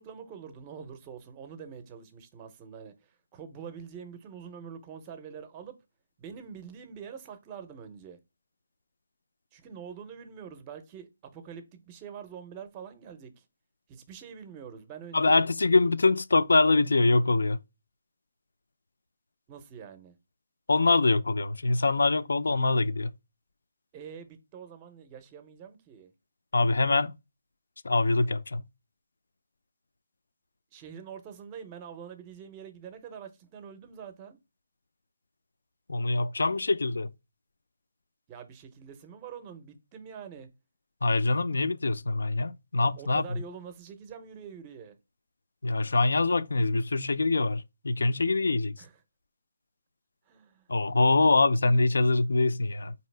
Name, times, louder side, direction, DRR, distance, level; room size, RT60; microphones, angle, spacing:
voice 1, 0.0-5.8 6.2-8.2 9.5-13.4 13.9-15.4 19.5-20.2 23.9-26.1 30.7-34.4 38.3-40.5 43.0-45.0 48.8-49.0 50.3-50.7, right 7 dB, 20° right, 0.5 m, -45 dB
voice 2, 15.1-17.6 20.7-23.1 26.5-27.1 27.8-28.6 35.9-37.1 41.0-43.3 45.6-48.7 50.7-52.9, left 3 dB, 80° left, 0.4 m, -24 dB
4.6 x 2.8 x 3.2 m
hypercardioid pair, 165°, 0 cm